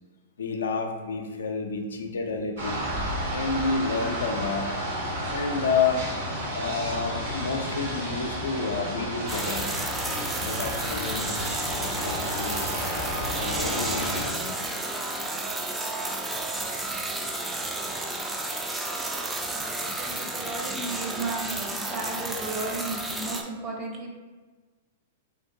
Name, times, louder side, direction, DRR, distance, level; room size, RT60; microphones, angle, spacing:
voice 1, 0.4-2.8 3.3-4.7 5.3-6.1 6.5-9.7 10.4-12.9 13.4-14.6, left 4 dB, 80° left, 3 dB, 0.4 m, -30 dB
sound 1, 2.6-14.2, equal, 70° right, 1.0 m, -32 dB
sound 2, 9.3-23.4, right 2 dB, 10° right, 0.3 m, -32 dB
voice 2, 18.8-24.1, right 3 dB, 35° right, -1 dB, 0.8 m, -35 dB
3.2 x 2.8 x 2.6 m, 1.3 s
hypercardioid pair, 115°, 0 cm